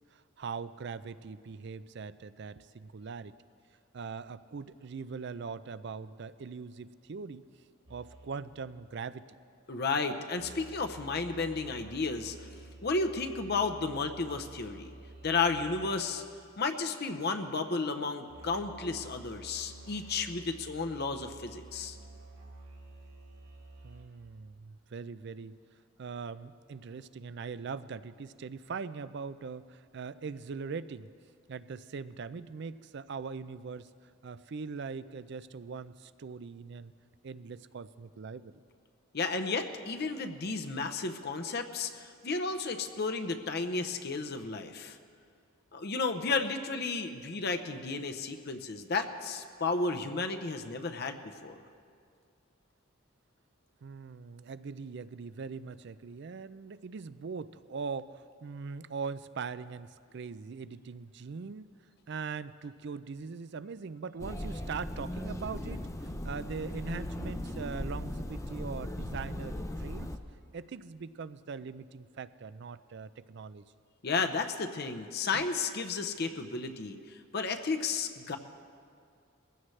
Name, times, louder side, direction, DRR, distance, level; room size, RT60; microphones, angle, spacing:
voice 1, 0.1-3.4 3.9-7.4 7.9-9.2 23.8-25.6 26.0-31.1 31.5-33.9 34.2-36.9 37.2-38.5 53.8-61.7 62.1-70.1 70.5-73.6 75.3-75.5, right 5 dB, 55° right, 15 dB, 0.4 m, -41 dB
sound 1, 7.9-16.3 18.3-24.1, right 2 dB, 75° right, 4.3 m, -51 dB
voice 2, 9.7-12.4 12.8-14.9 15.2-16.2 16.6-22.0 39.1-45.0 45.7-51.6 74.0-78.4, left 4 dB, 50° left, 6 dB, 0.7 m, -33 dB
sound 2, 64.2-70.2, left 1 dB, 15° left, 0.5 m, -38 dB
21.5 x 16.0 x 3.2 m, 2.3 s
head